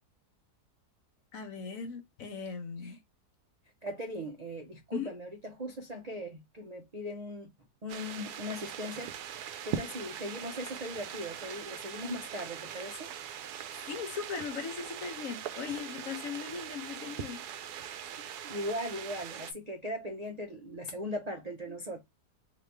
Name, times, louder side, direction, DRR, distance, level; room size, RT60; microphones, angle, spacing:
voice 1, 1.3-3.0 4.9-5.1 13.9-17.4, left 6 dB, 60° left, 1.3 m, -38 dB
voice 2, 3.8-7.5 7.8-13.1 18.4-22.0, equal, 55° right, 0.4 m, -39 dB
sound 1, 7.9-19.5, right 9 dB, 75° right, 1.2 m, -41 dB
4.1 x 2.8 x 3.3 m
omnidirectional pair, 1.7 m